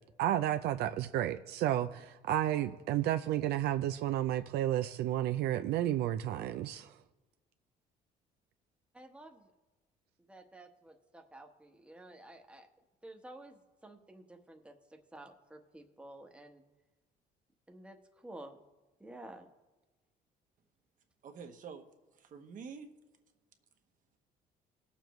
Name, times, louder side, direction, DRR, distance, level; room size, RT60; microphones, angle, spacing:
voice 1, 0.2-6.9, right 12 dB, 75° right, 0.4 m, -32 dB
voice 2, 8.9-9.5 10.3-12.7 13.0-16.6 17.7-18.6 19.0-19.5, right 1 dB, 5° right, 1.0 m, -52 dB
voice 3, 21.2-21.9 22.1-22.9, right 6 dB, 50° right, 1.0 m, -47 dB
18.5 x 7.0 x 3.1 m
cardioid pair, 110°, 17 cm